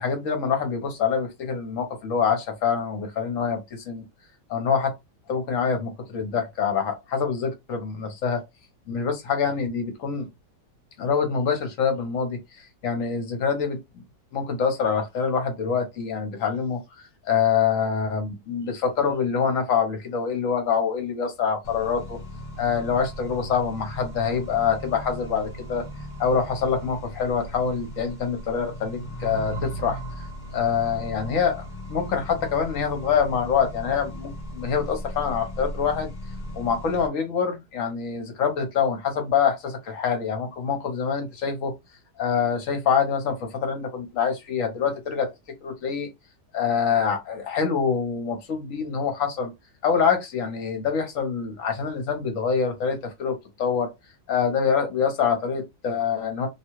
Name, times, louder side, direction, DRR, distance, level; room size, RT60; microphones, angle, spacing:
voice 1, 0.0-4.0 4.5-4.9 5.3-8.4 8.9-10.3 11.0-14.0 14.3-22.2 22.6-25.9 26.2-30.3 30.5-36.1 36.5-41.7 42.2-45.3 45.6-46.1 46.5-49.5 49.8-53.9 54.3-56.5, left 6 dB, 55° left, 1.1 m, -25 dB
Accelerating revving vroom, 21.6-37.1, equal, 40° left, 0.7 m, -37 dB
2.8 x 2.3 x 3.0 m
omnidirectional pair, 1.9 m